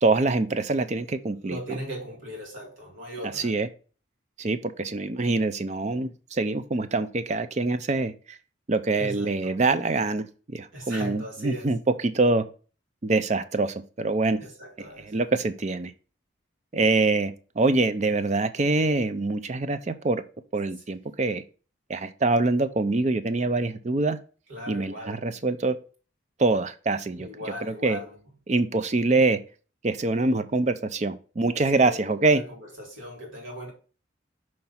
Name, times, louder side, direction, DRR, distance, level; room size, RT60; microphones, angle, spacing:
voice 1, 0.0-1.8 3.4-3.7 4.4-8.4 8.7-12.4 13.0-14.4 15.0-15.9 16.7-20.2 20.5-21.4 21.9-24.2 24.7-25.8 26.4-27.3 27.6-28.0 28.5-29.4 29.8-32.4, right 3 dB, 35° right, 0.4 m, -25 dB
voice 2, 1.3-3.6 8.9-9.6 10.7-11.8 14.4-15.1 24.5-25.3 27.2-28.2 31.7-33.7, equal, 85° right, 2.2 m, -38 dB
5.8 x 3.2 x 5.5 m
head